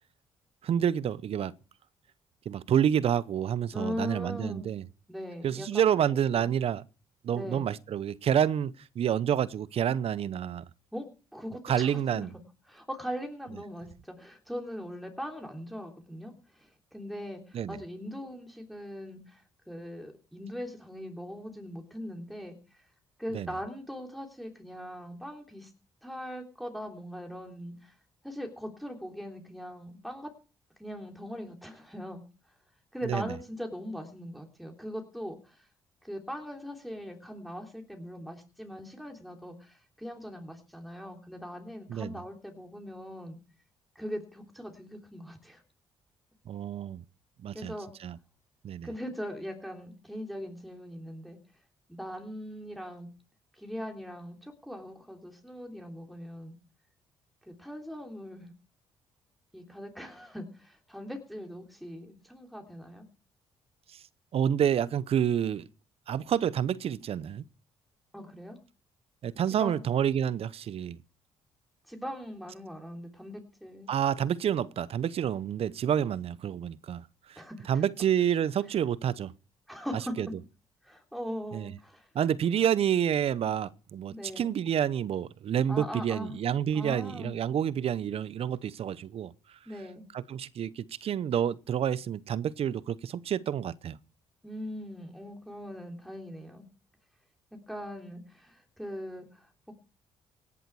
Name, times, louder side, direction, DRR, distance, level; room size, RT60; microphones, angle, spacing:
voice 1, 0.6-1.5 2.5-4.9 5.4-6.8 7.2-10.6 11.6-12.3 17.5-17.8 23.3-23.5 33.0-33.3 41.9-42.2 46.5-47.0 47.4-47.7 48.0-48.2 48.6-48.9 63.9-64.0 64.3-65.6 66.1-67.4 69.2-71.0 73.9-77.0 77.3-77.4 77.7-79.3 80.2-80.3 81.5-81.7 82.1-89.3 90.1-94.0, right 9 dB, 60° right, 0.8 m, -28 dB
voice 2, 3.7-4.7 5.1-6.5 7.3-7.7 10.9-11.1 11.3-12.3 12.7-22.6 23.2-25.7 26.0-27.9 28.2-30.3 30.8-32.2 32.9-35.7 36.0-43.4 43.9-45.6 47.5-47.9 48.8-51.4 51.9-53.1 53.5-56.5 57.4-58.5 59.5-63.1 68.1-68.6 69.6-69.8 71.9-73.9 77.3-77.8 79.7-80.1 80.8-82.1 82.4-82.6 84.1-84.5 85.7-86.4 86.7-87.3 89.7-90.0 94.4-96.6 97.7-99.7, equal, ahead, 3.4 m, -40 dB
17.5 x 11.0 x 4.8 m
supercardioid pair, 60°, 11 cm